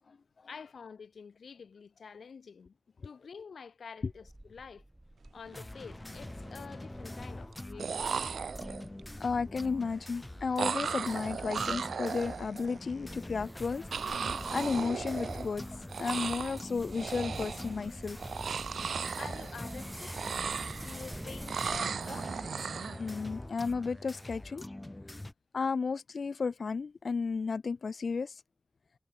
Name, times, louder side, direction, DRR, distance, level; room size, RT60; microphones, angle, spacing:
voice 1, 0.5-2.8 3.0-4.8 5.3-8.1 19.2-20.2 20.6-22.4, left 6 dB, 75° left, 7.4 m, -48 dB
sound 1, 4.0-22.3, right 1 dB, 10° right, 3.1 m, -49 dB
sound 2, 5.4-25.3, left 1 dB, 15° left, 2.5 m, -45 dB
sound 3, 5.4-5.6 5.9-6.5 7.5-7.6 7.8-9.0 10.6-12.8 13.9-15.6 15.9-16.6 16.9-17.7 18.2-19.8 20.1-21.1 21.5-23.0, right 6 dB, 90° right, 0.4 m, -36 dB
voice 2, 9.2-13.9 14.2-18.2 23.0-24.6 25.5-28.4, left 5 dB, 55° left, 1.1 m, -33 dB
wide cardioid pair, 145°, 0 cm